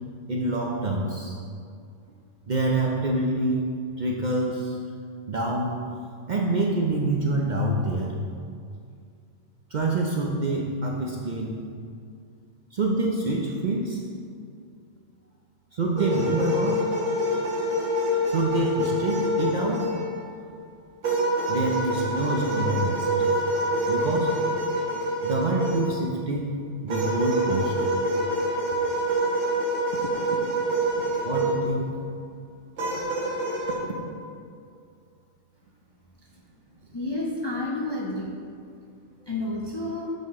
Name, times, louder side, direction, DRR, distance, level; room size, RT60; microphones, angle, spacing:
voice 1, 0.3-1.4 2.5-3.7 4.0-4.8 5.3-5.8 6.3-8.2 9.7-11.6 12.7-14.0 15.7-16.8 18.3-19.9 21.5-23.2 23.7-24.3 24.9-27.8 31.0-32.0, right 2 dB, 50° right, -2 dB, 0.6 m, -26 dB
sound 1, 16.0-20.2 21.0-26.0 26.9-31.7 32.8-33.8, right 1 dB, 75° right, 1.6 m, -26 dB
voice 2, 36.9-38.4 39.3-40.1, left 2 dB, 30° left, -3 dB, 0.5 m, -30 dB
7.2 x 5.7 x 3.6 m, 2.3 s
omnidirectional pair, 1.3 m